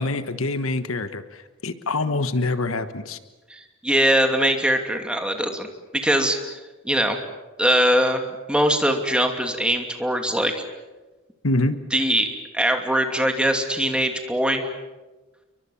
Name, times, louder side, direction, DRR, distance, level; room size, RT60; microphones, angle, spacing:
voice 1, 0.0-3.2 11.4-11.8, left 2 dB, 80° left, 11 dB, 1.4 m, -25 dB
voice 2, 3.5-5.7 6.0-6.5 6.8-7.2 7.6-8.2 8.5-10.6 11.9-12.3 12.5-14.7, equal, 5° right, 4 dB, 2.7 m, -21 dB
30.0 x 23.0 x 7.2 m, 1.2 s
head